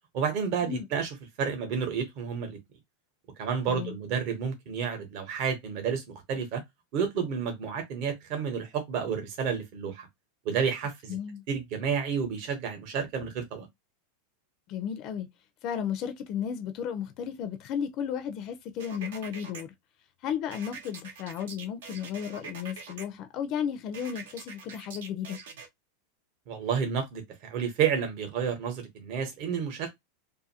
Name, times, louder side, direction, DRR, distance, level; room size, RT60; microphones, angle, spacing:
voice 1, 0.1-1.1 1.4-2.6 3.4-6.6 6.9-10.1 10.4-11.2 11.5-13.7 26.5-30.0, right 7 dB, 45° right, 0.9 m, -30 dB
voice 2, 11.1-11.4 14.7-15.3 15.6-19.7 20.2-25.4, left 8 dB, 40° left, 0.4 m, -34 dB
sound 1, 18.8-19.6 20.5-23.0 23.9-25.7, right 5 dB, 80° right, 0.8 m, -44 dB
2.6 x 2.4 x 2.7 m
supercardioid pair, 155°, 0 cm